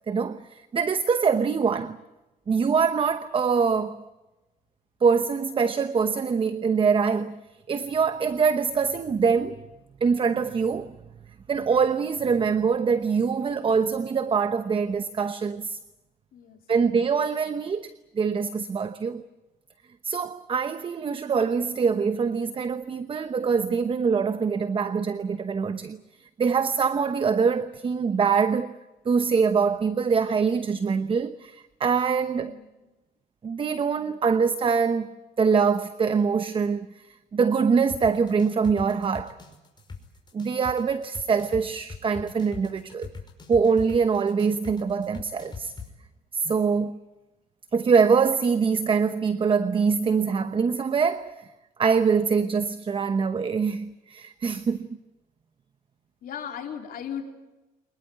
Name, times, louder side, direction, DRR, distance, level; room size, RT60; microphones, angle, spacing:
voice 1, 0.1-2.0 2.5-4.0 5.0-7.4 7.7-9.6 10.0-11.0 11.5-15.8 16.7-17.9 18.2-19.2 20.0-28.7 29.0-32.6 33.4-35.1 35.4-37.1 37.3-39.4 40.3-43.1 43.5-45.7 46.3-47.0 47.7-51.5 51.8-54.9, right 5 dB, 30° right, 0.9 m, -24 dB
voice 2, 32.4-32.9 56.2-57.2, left 8 dB, 60° left, 3.7 m, -37 dB
sound 1, 37.9-45.9, left 5 dB, 25° left, 5.4 m, -40 dB
25.0 x 20.5 x 9.3 m
cardioid pair, 110°, 17 cm